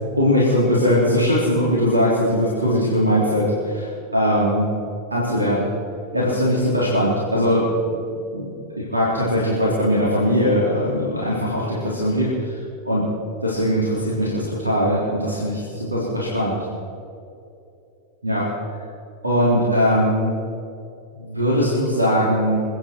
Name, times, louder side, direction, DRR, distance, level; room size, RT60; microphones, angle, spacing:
voice 1, 0.2-4.7 5.1-5.7 6.1-7.6 8.0-12.5 12.8-13.0 13.4-16.6 18.2-18.4 19.2-20.3 21.2-22.6, equal, 80° right, -6 dB, 3.7 m, -20 dB
28.5 x 9.7 x 4.7 m, 2.6 s
figure-of-eight pair, 90°, 0 cm